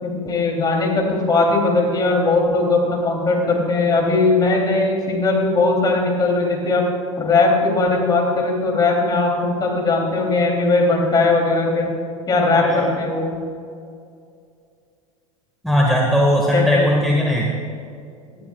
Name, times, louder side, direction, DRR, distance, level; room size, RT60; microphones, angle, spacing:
voice 1, 0.0-6.8 7.2-11.9 12.3-13.3 16.5-17.1, left 3 dB, 20° left, 0 dB, 2.9 m, -19 dB
voice 2, 12.5-12.9 15.6-17.5, equal, ahead, -3 dB, 1.6 m, -18 dB
19.0 x 12.0 x 2.3 m, 2.3 s
figure-of-eight pair, 85°, 18 cm